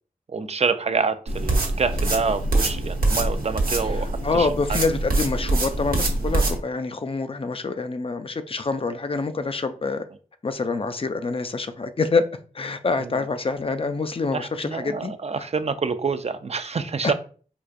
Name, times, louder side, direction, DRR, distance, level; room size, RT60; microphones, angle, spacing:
voice 1, 0.3-4.9 13.0-13.1 14.3-17.1, right 5 dB, 45° right, 0.4 m, -27 dB
sound 1, 1.3-6.6, right 2 dB, 80° right, 0.9 m, -24 dB
voice 2, 3.8-10.0 10.4-12.2 12.5-15.1 15.4-15.5 17.0-17.1, left 3 dB, 40° left, 0.4 m, -26 dB
4.6 x 2.4 x 2.4 m
cardioid pair, 55°, 15 cm